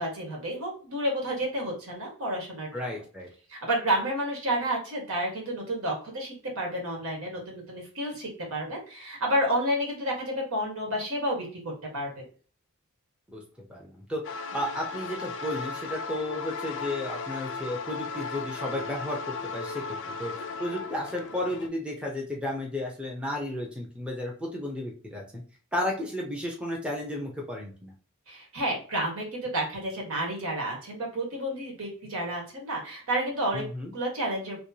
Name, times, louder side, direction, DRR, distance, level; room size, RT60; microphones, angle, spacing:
voice 1, 0.0-2.7 3.5-12.2 28.3-33.6 33.9-34.6, right 1 dB, 70° right, 0 dB, 1.6 m, -30 dB
voice 2, 2.7-3.3 13.3-13.4 13.7-14.2 14.5-19.8 20.2-20.3 20.6-25.4 25.7-27.9 33.5-33.9, left 1 dB, 5° right, -1 dB, 0.7 m, -33 dB
sound 1, 14.2-21.7, left 4 dB, 60° left, 0.5 m, -36 dB
3.1 x 3.0 x 2.8 m, 0.40 s
head